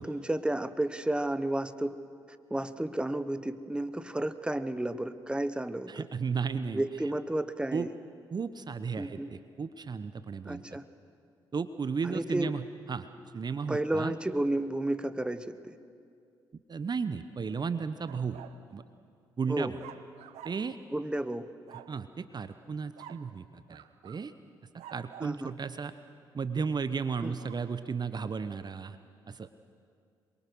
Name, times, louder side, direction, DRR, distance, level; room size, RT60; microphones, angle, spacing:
voice 1, 0.0-2.0 2.5-6.1 6.7-7.9 9.0-9.3 10.5-10.9 12.0-12.5 13.7-15.8 19.5-19.7 20.9-21.5 25.2-25.5 27.2-27.4, right 1 dB, 10° right, 13 dB, 1.1 m, -32 dB
voice 2, 5.9-6.8 7.7-7.9 8.3-10.6 11.5-12.6 12.9-13.1 13.3-14.1 16.7-18.5 18.7-18.8 19.4-19.8 20.4-20.8 21.9-24.3 24.9-25.9 26.3-29.0 29.3-29.5, right 5 dB, 35° right, 12 dB, 0.9 m, -34 dB
sound 1, 18.1-18.6 19.8-20.8 21.7-22.0 23.0-23.3 23.7-24.3 24.8-25.4 27.1-27.6, right 11 dB, 65° right, 0.9 m, -49 dB
26.5 x 23.0 x 6.3 m, 2.3 s
figure-of-eight pair, 40°, 12 cm